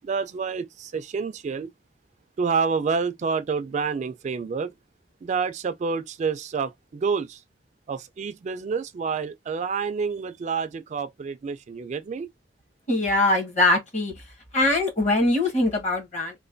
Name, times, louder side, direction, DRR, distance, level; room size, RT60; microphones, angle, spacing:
voice 1, 0.0-1.7 2.4-4.7 5.2-7.4 7.9-12.3, right 5 dB, 40° right, 0.3 m, -28 dB
voice 2, 12.9-14.1 14.5-16.3, left 2 dB, 40° left, 1.2 m, -22 dB
3.1 x 2.1 x 2.5 m
head